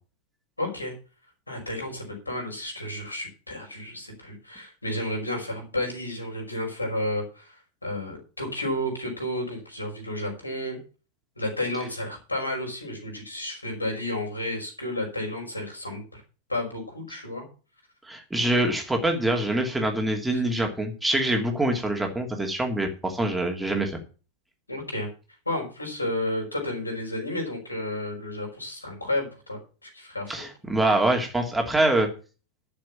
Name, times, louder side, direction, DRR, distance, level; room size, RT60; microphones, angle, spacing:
voice 1, 0.6-0.9 1.5-10.8 11.4-16.2 16.5-17.5 20.3-20.4 24.7-25.1 25.5-30.4, left 1 dB, 80° left, 1 dB, 5.3 m, -32 dB
voice 2, 18.1-24.0 30.3-32.1, right 1 dB, 5° right, 3 dB, 2.7 m, -25 dB
12.0 x 6.9 x 7.1 m, 0.35 s
figure-of-eight pair, 90°, 0 cm